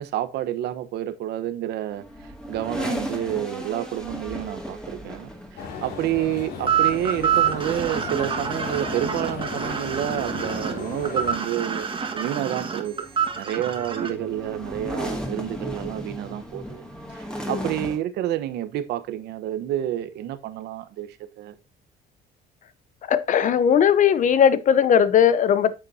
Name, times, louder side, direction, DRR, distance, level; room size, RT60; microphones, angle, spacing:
voice 1, 0.0-2.0 2.5-11.9 12.1-13.1 13.3-21.1 21.4-21.5, right 12 dB, 80° right, 1.0 m, -29 dB
sound 1, 1.9-18.0, equal, 5° left, 2.3 m, -37 dB
sound 2, 5.6-11.4, left 6 dB, 70° left, 3.1 m, -35 dB
sound 3, 6.7-14.1, right 8 dB, 30° right, 1.5 m, -26 dB
voice 2, 23.1-25.7, left 8 dB, 50° left, 0.8 m, -18 dB
8.9 x 6.8 x 2.7 m
cardioid pair, 110°, 17 cm